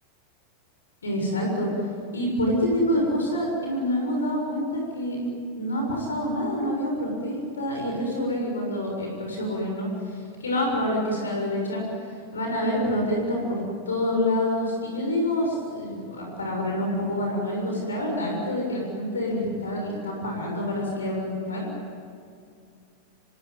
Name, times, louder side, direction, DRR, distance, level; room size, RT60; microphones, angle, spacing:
voice 1, 1.0-1.7 2.1-5.2 5.5-11.8 12.3-21.7, left 1 dB, 70° left, 0 dB, 6.8 m, -27 dB
26.0 x 24.0 x 9.6 m, 2.3 s
figure-of-eight pair, 90°, 0 cm